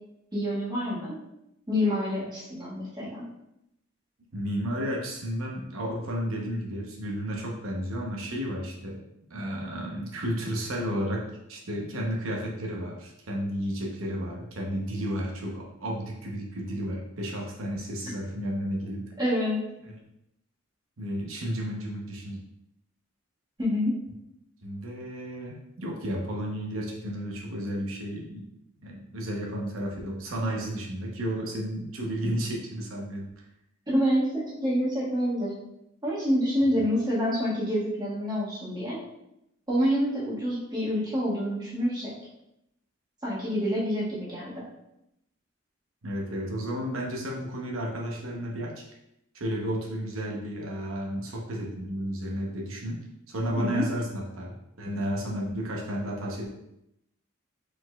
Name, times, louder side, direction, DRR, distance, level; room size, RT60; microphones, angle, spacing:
voice 1, 0.3-1.2 1.7-3.2 19.2-19.6 23.6-24.0 33.9-35.5 36.0-39.0 39.7-42.1 43.2-44.6 53.6-53.9, equal, 20° right, -7 dB, 1.4 m, -27 dB
voice 2, 4.3-9.0 9.3-19.0 19.8-20.0 21.0-22.4 24.6-28.5 28.8-33.3 46.0-48.8 49.3-53.0 53.3-56.5, equal, 85° right, -1 dB, 0.8 m, -32 dB
4.9 x 4.1 x 2.2 m, 0.82 s
head